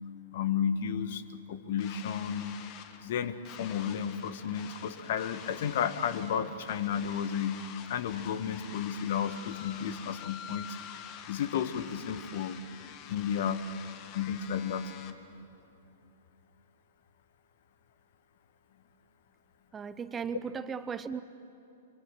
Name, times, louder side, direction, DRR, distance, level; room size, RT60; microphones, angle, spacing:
voice 1, 0.3-2.6 3.0-10.8 11.3-12.6 13.1-13.7 14.1-15.3, left 8 dB, 60° left, 12 dB, 1.4 m, -33 dB
sound 1, 1.8-15.1, left 9 dB, 40° left, 1.7 m, -47 dB
voice 2, 19.7-21.2, right 6 dB, 20° right, 13 dB, 0.9 m, -36 dB
24.0 x 23.5 x 7.7 m, 2.7 s
hypercardioid pair, 115°, 0 cm